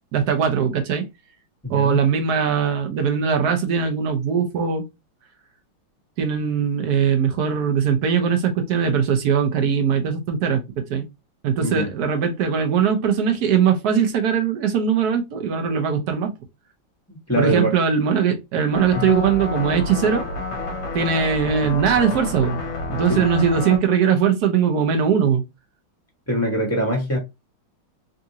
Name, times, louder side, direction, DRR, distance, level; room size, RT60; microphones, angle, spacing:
voice 1, 0.1-1.0 1.7-4.8 6.2-10.6 10.9-11.0 11.4-16.3 17.4-20.3 20.9-22.6 22.9-25.4, right 7 dB, 65° right, 1.1 m, -20 dB
voice 2, 1.6-2.0 11.6-11.9 17.1-17.7 18.9-19.0 23.1-23.2 26.3-27.2, equal, 10° left, 1.1 m, -23 dB
sound 1, 18.7-23.8, left 3 dB, 55° left, 1.2 m, -29 dB
3.6 x 2.6 x 2.7 m
omnidirectional pair, 2.2 m